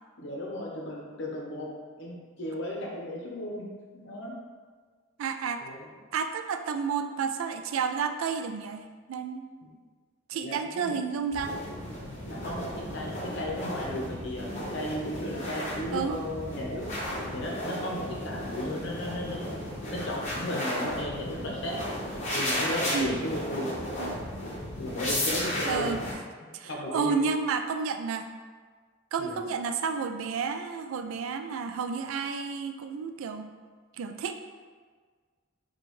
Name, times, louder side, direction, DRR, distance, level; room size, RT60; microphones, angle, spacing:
voice 1, 0.2-1.7 2.0-3.7 3.9-4.3 5.6-5.9 9.6-9.7 10.4-11.0 12.2-16.8 17.3-19.6 19.8-21.8 22.3-23.7 24.6-26.0 26.6-27.2 29.2-29.4, left 1 dB, 60° left, -2 dB, 0.8 m, -35 dB
voice 2, 5.2-5.6 6.1-9.4 10.3-11.6 15.9-16.2 22.9-23.2 24.0-24.2 25.7-26.0 26.5-28.3 29.1-33.5 34.0-34.3, right 5 dB, 75° right, 7 dB, 0.3 m, -31 dB
sound 1, 11.3-26.1, left 1 dB, 35° left, 1.0 m, -34 dB
5.1 x 2.4 x 3.0 m, 1.5 s
head